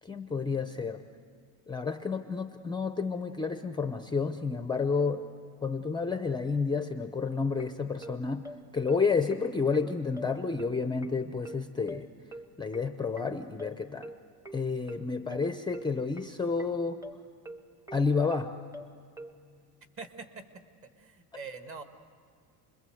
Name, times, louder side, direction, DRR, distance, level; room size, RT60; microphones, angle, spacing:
voice 1, 0.0-1.0 1.7-5.3 5.6-8.5 8.7-12.1 12.6-14.1 14.5-17.0 17.9-18.5, left 4 dB, 10° left, 7 dB, 0.6 m, -30 dB
sound 1, 7.3-19.4, right 1 dB, 10° right, 1.0 m, -45 dB
voice 2, 21.0-21.8, right 4 dB, 30° right, 7 dB, 1.8 m, -43 dB
29.0 x 22.0 x 7.9 m, 2.2 s
cardioid pair, 135°, 44 cm